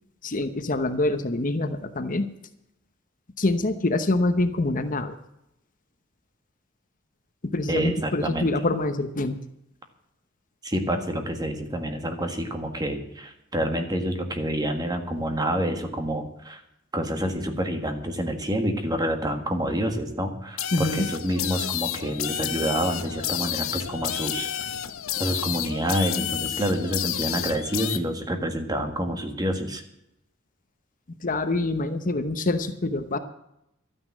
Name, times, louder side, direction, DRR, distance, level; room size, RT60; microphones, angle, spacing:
voice 1, 0.2-2.3 3.4-5.1 7.4-9.4 20.7-21.1 31.2-33.2, left 2 dB, 40° left, 9 dB, 1.0 m, -25 dB
voice 2, 7.7-8.5 10.6-16.6 16.9-24.5 25.2-29.8, equal, 20° right, 6 dB, 1.7 m, -28 dB
sound 1, 20.6-28.0, left 11 dB, 80° left, 0.9 m, -30 dB
13.0 x 9.5 x 7.4 m, 0.81 s
head